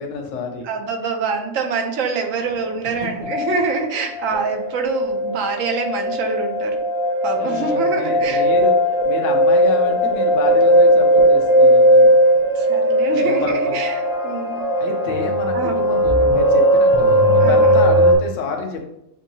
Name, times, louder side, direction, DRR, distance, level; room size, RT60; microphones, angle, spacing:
voice 1, 0.0-0.7 2.8-3.1 7.4-8.7 9.0-12.1 13.1-13.8 14.8-18.9, left 4 dB, 75° left, 2 dB, 1.1 m, -29 dB
voice 2, 0.6-6.8 7.2-8.5 12.5-14.6 15.5-15.8 17.4-17.8, right 5 dB, 80° right, 4 dB, 1.1 m, -25 dB
sound 1, 2.6-2.7 3.2-3.8 4.1-18.1, equal, 25° right, 0.5 m, -17 dB
7.0 x 2.7 x 2.7 m, 0.81 s
omnidirectional pair, 1.3 m